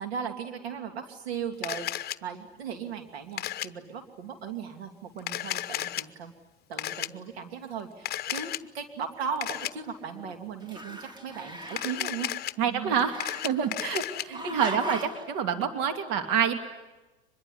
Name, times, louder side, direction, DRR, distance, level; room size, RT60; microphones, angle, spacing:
voice 1, 0.0-6.3 6.7-12.3 12.7-13.0 14.3-14.9 15.6-15.7, right 7 dB, 70° right, 6 dB, 2.8 m, -37 dB
Camera, 1.6-2.2 3.4-3.7 5.2-6.0 6.8-7.1 8.1-8.6 9.4-9.7 11.7-12.5 13.0-14.2, left 13 dB, 30° left, 0.9 m, -33 dB
Growling, 9.1-10.3 10.6-12.0 12.9-13.9 14.3-15.3, equal, 15° right, 2.2 m, -39 dB
voice 2, 12.6-13.1 13.4-16.6, right 7 dB, 55° right, 7 dB, 2.7 m, -27 dB
24.5 x 21.5 x 10.0 m, 1.1 s
hypercardioid pair, 95°, 32 cm